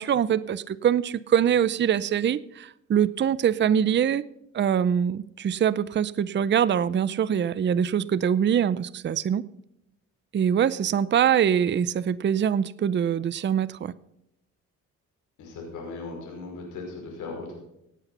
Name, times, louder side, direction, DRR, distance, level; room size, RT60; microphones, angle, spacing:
voice 1, 0.0-4.2 4.5-9.4 10.3-13.9, right 8 dB, 40° right, 17 dB, 0.6 m, -23 dB
voice 2, 15.4-17.5, left 3 dB, 90° left, 0 dB, 5.4 m, -37 dB
17.5 x 8.3 x 5.6 m, 0.82 s
cardioid pair, 90°, 30 cm